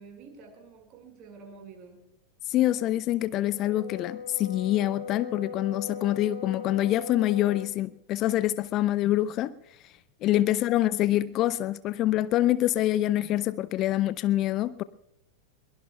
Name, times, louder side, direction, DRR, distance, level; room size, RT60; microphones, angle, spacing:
voice 1, 0.0-2.1 10.5-10.6, right 5 dB, 35° right, 4 dB, 5.2 m, -49 dB
voice 2, 2.5-9.5 10.2-14.8, left 14 dB, 35° left, 17 dB, 0.5 m, -25 dB
Brass instrument, 3.5-7.7, left 5 dB, 70° left, 3.5 m, -39 dB
22.5 x 22.5 x 2.3 m, 0.86 s
figure-of-eight pair, 90°, 0 cm